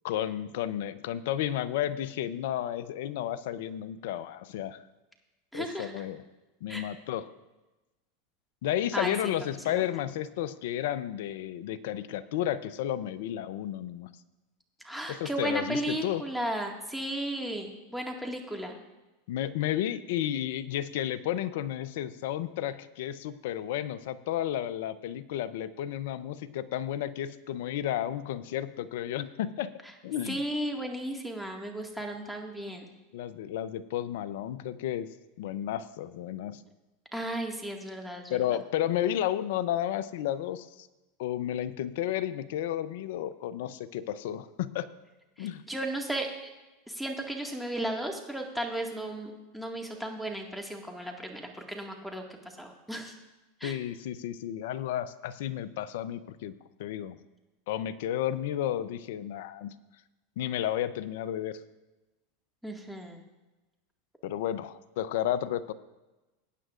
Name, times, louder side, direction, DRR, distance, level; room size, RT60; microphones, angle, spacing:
voice 1, 0.0-4.8 5.5-6.2 6.6-7.3 8.6-14.1 15.1-16.2 19.3-29.7 30.0-30.4 33.1-35.1 35.4-36.6 38.3-40.9 41.2-44.9 45.4-45.6 53.6-56.5 56.8-57.2 57.7-59.7 60.4-61.6 64.2-65.7, left 11 dB, 70° left, 14 dB, 0.6 m, -32 dB
voice 2, 5.5-6.0 6.7-6.8 8.9-9.1 9.4-9.8 14.8-18.8 30.3-32.9 37.1-38.4 45.4-46.5 46.9-53.1 53.6-53.8 62.6-63.2, right 1 dB, ahead, 2 dB, 1.9 m, -35 dB
19.0 x 9.1 x 2.5 m, 1.1 s
hypercardioid pair, 105°, 0 cm